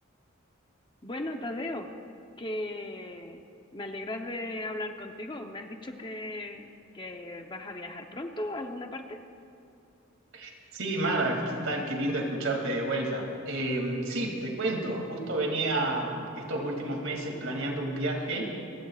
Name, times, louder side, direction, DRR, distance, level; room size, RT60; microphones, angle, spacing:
voice 1, 1.0-1.9 2.4-3.4 3.7-6.7 6.9-9.2, left 1 dB, 25° left, 4 dB, 0.8 m, -37 dB
voice 2, 10.3-18.5, right 2 dB, 70° right, 1 dB, 2.5 m, -30 dB
28.5 x 16.0 x 2.4 m, 2.5 s
head